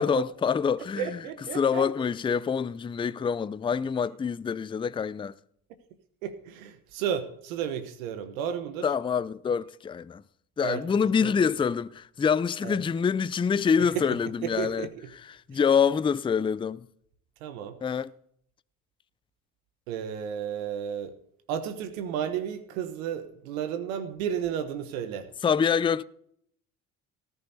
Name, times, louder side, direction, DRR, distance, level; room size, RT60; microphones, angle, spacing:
voice 1, 0.0-1.2 1.5-5.4 8.8-10.2 10.6-14.9 15.5-16.9 17.8-18.1 25.4-26.0, left 6 dB, 15° left, 0.4 m, -26 dB
voice 2, 1.0-1.9 6.2-8.9 10.6-10.8 11.2-11.3 12.6-12.8 13.8-15.1 15.5-15.6 17.4-17.8 19.9-21.2 21.5-25.3, right 9 dB, 85° right, 1.0 m, -33 dB
19.0 x 13.5 x 2.7 m
hypercardioid pair, 60°, 41 cm